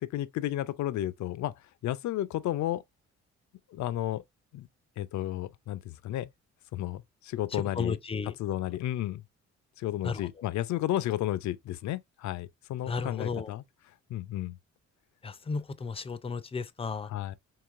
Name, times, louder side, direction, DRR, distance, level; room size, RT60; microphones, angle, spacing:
voice 1, 0.0-1.5 1.8-2.8 3.7-4.2 4.5-4.7 5.0-6.3 6.7-8.0 8.4-9.2 9.8-13.6 14.1-14.6 17.1-17.4, left 13 dB, 70° left, 0.5 m, -32 dB
voice 2, 7.5-8.3 10.0-10.3 12.9-13.5 15.2-17.1, left 5 dB, 20° left, 0.4 m, -34 dB
4.8 x 3.0 x 2.5 m
cardioid pair, 90°, 30 cm